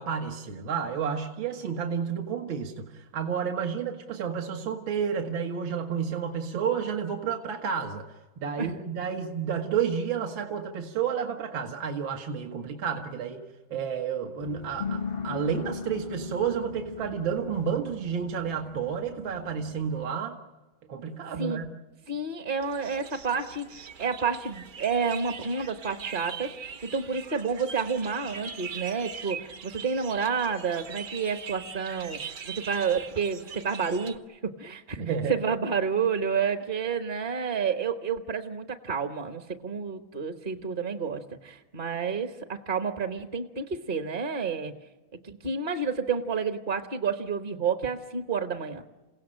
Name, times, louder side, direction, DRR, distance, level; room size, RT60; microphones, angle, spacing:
voice 1, 0.0-8.1 8.4-13.4 13.7-20.4 20.9-21.7 35.0-35.4, right 7 dB, 75° right, 3 dB, 2.3 m, -31 dB
sound 1, 14.4-20.1, left 5 dB, 45° left, 0.8 m, -38 dB
voice 2, 22.1-35.0 35.3-44.7 45.2-48.8, right 5 dB, 35° right, 7 dB, 1.0 m, -30 dB
sound 2, 22.6-34.2, right 6 dB, 50° right, 1.5 m, -42 dB
28.5 x 17.0 x 8.9 m, 1.2 s
omnidirectional pair, 2.2 m